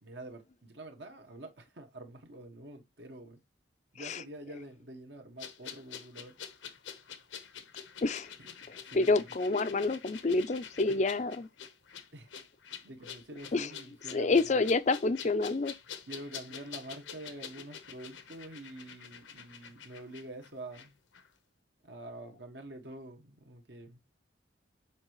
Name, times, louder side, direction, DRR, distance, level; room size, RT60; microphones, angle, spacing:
voice 1, 0.0-3.4 3.9-6.4 7.1-7.2 8.4-9.3 10.9-11.0 12.1-12.3 12.8-14.6 16.1-21.0 21.8-24.0, right 1 dB, 65° right, 1.5 m, -47 dB
sound 1, 5.4-20.9 21.1-21.3, left 8 dB, 90° left, 1.0 m, -47 dB
voice 2, 8.0-8.3 8.7-11.5 13.5-13.7 14.1-15.7, left 3 dB, 40° left, 0.5 m, -28 dB
7.2 x 4.7 x 3.0 m
head